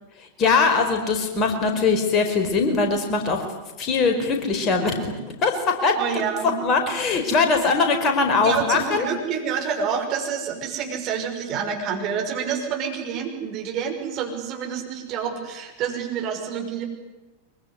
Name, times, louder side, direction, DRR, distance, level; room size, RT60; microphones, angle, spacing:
voice 1, 0.4-3.4 3.8-4.9 5.4-9.1, left 4 dB, 30° left, 5 dB, 4.8 m, -21 dB
voice 2, 6.0-6.6 8.4-16.8, right 7 dB, 35° right, 3 dB, 5.7 m, -28 dB
24.5 x 23.0 x 9.9 m, 1.1 s
figure-of-eight pair, 90°, 0 cm